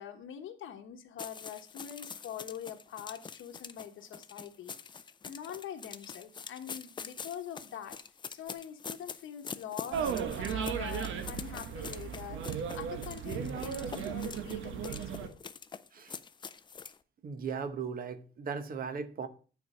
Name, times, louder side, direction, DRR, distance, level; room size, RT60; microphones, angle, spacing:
voice 1, 0.0-8.0 8.3-15.4, left 9 dB, 85° left, 1.1 m, -44 dB
sound 1, 1.2-17.0, left 6 dB, 25° left, 0.4 m, -45 dB
sound 2, 9.9-15.3, right 7 dB, 85° right, 1.0 m, -36 dB
voice 2, 17.2-19.3, right 6 dB, 45° right, 0.9 m, -37 dB
9.4 x 4.7 x 5.4 m
cardioid pair, 160°, 20 cm